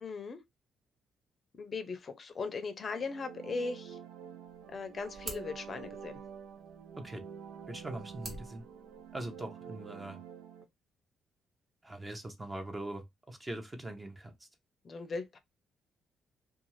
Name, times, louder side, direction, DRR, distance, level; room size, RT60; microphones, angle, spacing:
voice 1, 0.0-0.4 1.6-4.0 4.7-6.1 14.8-15.4, left 4 dB, 45° left, 0.6 m, -38 dB
sound 1, 2.7-10.6, right 7 dB, 90° right, 0.4 m, -48 dB
sound 2, 4.5-9.5, right 2 dB, 60° right, 1.1 m, -50 dB
voice 2, 7.7-8.6 9.1-10.2 11.8-14.3, right 1 dB, 20° right, 0.8 m, -42 dB
2.5 x 2.3 x 3.0 m
cardioid pair, 90°, 0 cm